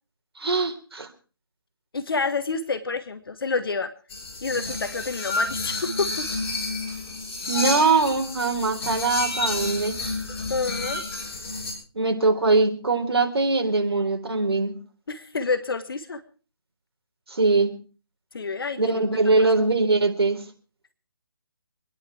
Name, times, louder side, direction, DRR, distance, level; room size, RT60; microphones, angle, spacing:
voice 1, 0.4-1.1 7.5-9.9 11.9-14.7 17.3-17.7 18.8-20.4, right 3 dB, 75° right, 4 dB, 3.8 m, -22 dB
voice 2, 1.9-3.9 4.4-6.3 10.5-11.0 15.1-16.2 18.3-19.0 19.4-19.5, left 4 dB, 60° left, 8 dB, 1.5 m, -28 dB
sound 1, 4.1-11.7, left 2 dB, 30° left, 7.4 m, -30 dB
26.0 x 10.5 x 4.5 m, 0.38 s
figure-of-eight pair, 160°, 13 cm